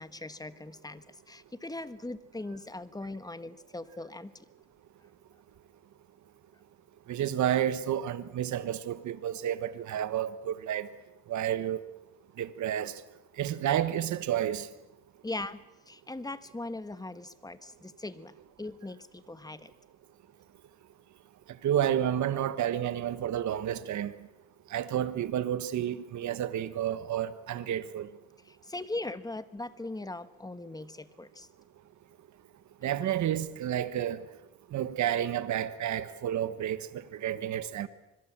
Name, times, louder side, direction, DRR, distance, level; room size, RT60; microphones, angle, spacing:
voice 1, 0.0-4.4 15.2-18.3 18.6-19.7 28.4-31.5, left 2 dB, 10° left, 1.5 m, -40 dB
voice 2, 7.1-10.9 11.3-11.8 12.4-12.9 13.4-14.7 21.6-24.1 24.7-28.1 32.8-34.2 34.7-36.8 37.1-37.9, right 10 dB, 70° right, 1.4 m, -30 dB
25.5 x 21.5 x 7.5 m
cardioid pair, 90°, 30 cm